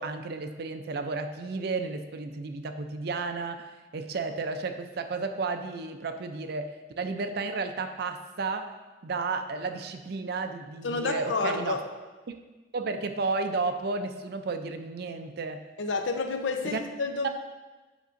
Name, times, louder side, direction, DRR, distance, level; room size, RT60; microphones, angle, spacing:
voice 1, 0.0-8.7 9.0-11.8 12.3-12.4 12.7-15.6 16.6-16.8 17.2-17.3, right 4 dB, 60° right, 7 dB, 0.4 m, -32 dB
voice 2, 10.8-11.8 15.8-17.3, left 3 dB, 85° left, 6 dB, 0.6 m, -29 dB
7.9 x 5.3 x 2.5 m, 1.2 s
head